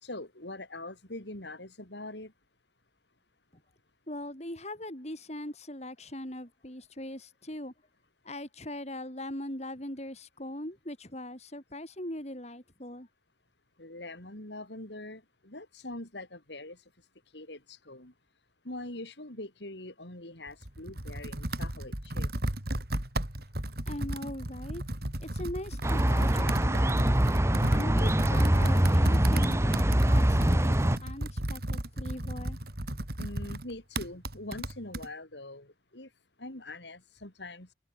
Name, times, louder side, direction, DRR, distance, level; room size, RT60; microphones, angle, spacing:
voice 1, 0.0-2.3 13.8-16.8 17.3-18.1 18.6-22.3 33.2-36.1 36.4-37.7, left 2 dB, 70° left, 4.7 m, -43 dB
voice 2, 4.1-7.7 8.2-13.1 23.9-24.8 25.2-27.4 27.7-32.6, left 1 dB, 35° left, 7.7 m, -40 dB
Computer keyboard, 20.5-35.1, right 1 dB, 60° right, 4.3 m, -35 dB
sound 1, 25.8-31.0, right 1 dB, 15° right, 1.1 m, -24 dB
head